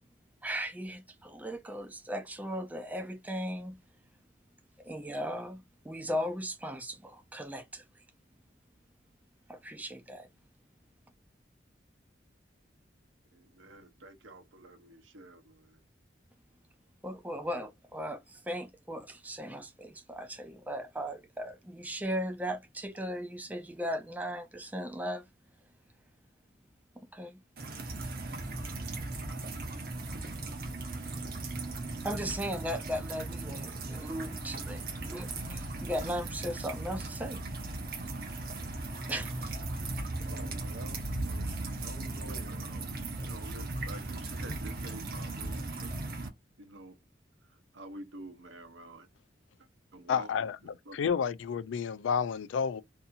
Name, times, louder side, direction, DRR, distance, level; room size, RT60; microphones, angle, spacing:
voice 1, 0.4-3.8 4.8-7.8 9.5-10.3 17.0-25.2 27.1-27.4 32.0-37.4 39.1-39.6, equal, 10° right, 0.4 m, -37 dB
voice 2, 13.3-15.8 40.2-45.9 46.6-47.0 47.7-49.1 49.9-50.5 50.9-51.3, right 2 dB, 90° right, 0.8 m, -49 dB
sound 1, 27.6-46.3, right 2 dB, 50° right, 0.7 m, -37 dB
voice 3, 50.1-52.8, left 7 dB, 90° left, 0.3 m, -31 dB
2.7 x 2.6 x 2.4 m
head